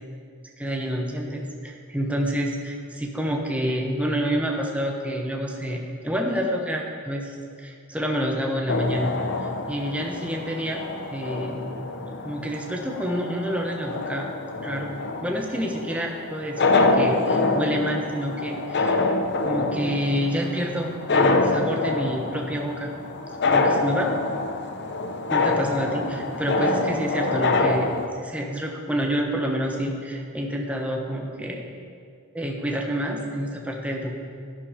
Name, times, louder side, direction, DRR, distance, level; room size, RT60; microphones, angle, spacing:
voice 1, 0.6-9.1 9.4-11.6 12.2-14.2 14.6-18.9 19.4-22.9 23.5-24.1 25.3-27.9 28.2-31.6 32.3-34.2, equal, 5° right, 1 dB, 0.9 m, -28 dB
sound 1, 8.7-28.1, left 3 dB, 50° left, 0.8 m, -26 dB
11.0 x 10.0 x 4.9 m, 2.2 s
head